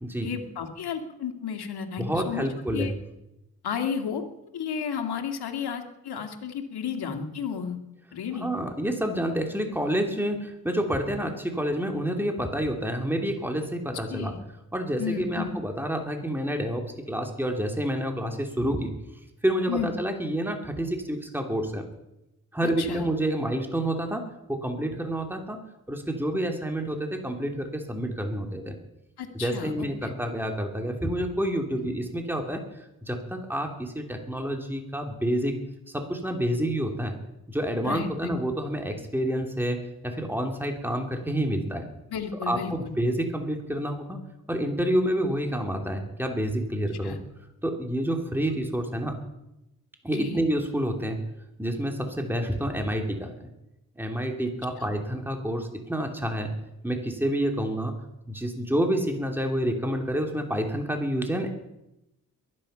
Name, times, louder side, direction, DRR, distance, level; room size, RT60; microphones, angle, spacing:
voice 1, 0.2-2.9 3.6-4.2 4.5-7.8 8.1-8.5 14.1-14.4 15.0-15.5 19.7-19.9 22.6-23.0 29.2-30.1 31.8-31.9 37.8-38.4 42.1-43.0 47.0-47.2 50.1-50.4 54.8-54.9, left 7 dB, 75° left, 5 dB, 2.2 m, -33 dB
voice 2, 2.0-2.9 8.4-14.3 14.7-18.9 19.4-21.8 22.5-24.2 24.5-25.6 25.9-28.8 29.3-35.6 35.9-37.1 37.5-41.8 42.5-44.2 44.5-47.2 47.6-49.2 50.0-51.2 51.6-53.3 54.0-56.5 56.8-57.9 58.3-61.5, right 1 dB, 5° right, 3 dB, 3.0 m, -28 dB
22.5 x 9.8 x 5.7 m, 0.89 s
supercardioid pair, 45°, 39 cm